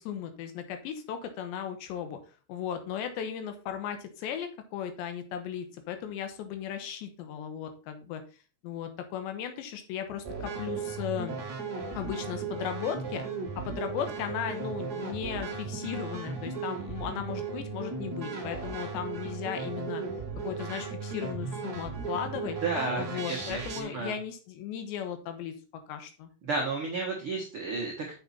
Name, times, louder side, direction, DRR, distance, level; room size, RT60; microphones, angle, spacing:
voice 1, 0.0-2.2 2.5-8.2 8.6-11.4 11.9-13.2 13.6-20.0 20.4-22.6 23.0-25.5 25.9-26.3, left 9 dB, 80° left, 7 dB, 3.3 m, -36 dB
sound 1, 10.2-23.8, right 5 dB, 55° right, 1.0 m, -36 dB
voice 2, 22.6-24.1 26.4-28.1, right 3 dB, 80° right, -2 dB, 1.2 m, -32 dB
7.9 x 7.0 x 4.2 m, 0.36 s
omnidirectional pair, 5.2 m